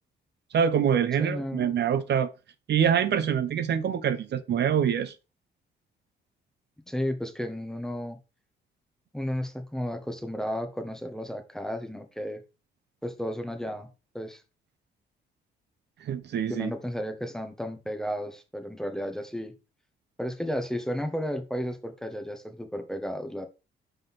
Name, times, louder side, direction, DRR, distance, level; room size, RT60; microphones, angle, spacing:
voice 1, 0.5-2.3 2.7-5.1 16.0-16.7, right 8 dB, 60° right, 0.7 m, -25 dB
voice 2, 1.2-1.7 6.9-8.2 9.1-12.4 13.0-13.9 14.1-14.4 16.5-19.5 20.2-23.5, equal, 5° left, 1.3 m, -33 dB
5.3 x 3.9 x 5.7 m
cardioid pair, 90°, 20 cm